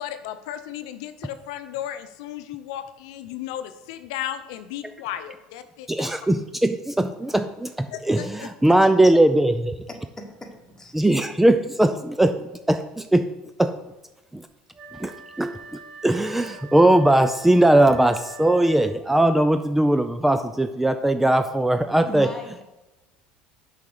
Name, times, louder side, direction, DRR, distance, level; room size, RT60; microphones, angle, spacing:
voice 1, 0.0-6.1 7.9-8.3, left 11 dB, 85° left, 10 dB, 0.7 m, -34 dB
voice 2, 5.9-9.8 10.9-13.3 13.6-13.7 14.3-14.5 15.0-22.3, right 1 dB, 5° right, 9 dB, 0.4 m, -20 dB
voice 3, 10.2-11.1 22.1-22.6, left 1 dB, 15° left, 3 dB, 1.6 m, -38 dB
Wind instrument woodwind instrument, 14.7-19.2, right 3 dB, 30° right, 3.1 m, -44 dB
6.7 x 5.0 x 6.6 m, 1.0 s
supercardioid pair, 105°, 3 cm